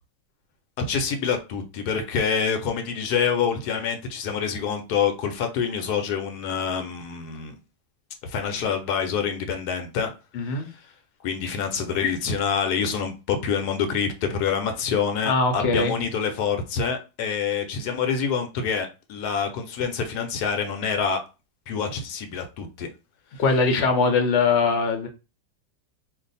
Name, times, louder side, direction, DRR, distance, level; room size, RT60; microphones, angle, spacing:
voice 1, 0.8-7.6 8.2-10.1 10.5-10.8 11.2-21.2 21.7-22.9, left 6 dB, 75° left, 5 dB, 1.1 m, -26 dB
voice 2, 10.3-10.7 15.3-15.9 23.4-25.1, left 4 dB, 55° left, 4 dB, 0.8 m, -21 dB
2.5 x 2.4 x 3.9 m, 0.30 s
omnidirectional pair, 1.7 m